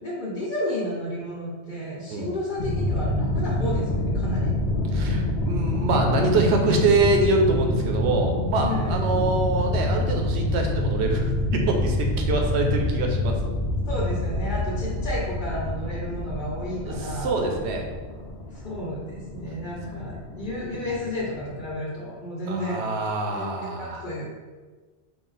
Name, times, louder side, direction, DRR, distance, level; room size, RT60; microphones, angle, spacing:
voice 1, 0.0-4.5 8.6-9.1 13.9-17.3 18.5-22.8 23.3-24.2, left 1 dB, 50° left, -9 dB, 1.0 m, -32 dB
sound 1, 2.6-21.7, left 1 dB, 85° left, 0.9 m, -27 dB
voice 2, 4.9-13.5 16.8-17.8 22.5-24.0, right 2 dB, 75° right, 2 dB, 0.9 m, -25 dB
3.9 x 2.4 x 4.0 m, 1.4 s
omnidirectional pair, 1.1 m